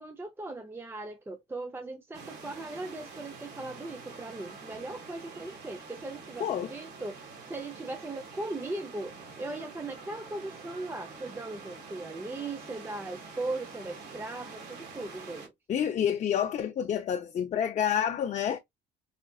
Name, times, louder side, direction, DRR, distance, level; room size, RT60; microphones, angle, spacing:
voice 1, 0.0-15.5, right 2 dB, 15° right, 0.6 m, -39 dB
sound 1, 2.1-15.5, right 4 dB, 75° right, 1.7 m, -46 dB
voice 2, 6.4-6.7 15.7-18.6, left 9 dB, 45° left, 0.6 m, -28 dB
4.9 x 2.4 x 2.3 m
cardioid pair, 110°, 17 cm